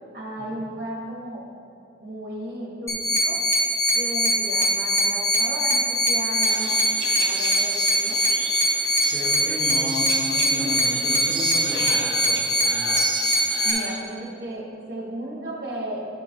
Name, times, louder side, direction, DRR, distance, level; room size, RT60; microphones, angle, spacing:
voice 1, 0.1-1.4 2.0-3.4 3.9-8.2 13.6-16.0, right 1 dB, 55° right, -3 dB, 1.2 m, -34 dB
sound 1, 2.9-13.7, equal, 15° left, 0.9 m, -22 dB
sound 2, 6.4-14.0, right 4 dB, 85° right, 0.9 m, -34 dB
voice 2, 9.1-13.2, equal, 30° right, -6 dB, 1.2 m, -33 dB
10.5 x 3.9 x 4.4 m, 2.5 s
head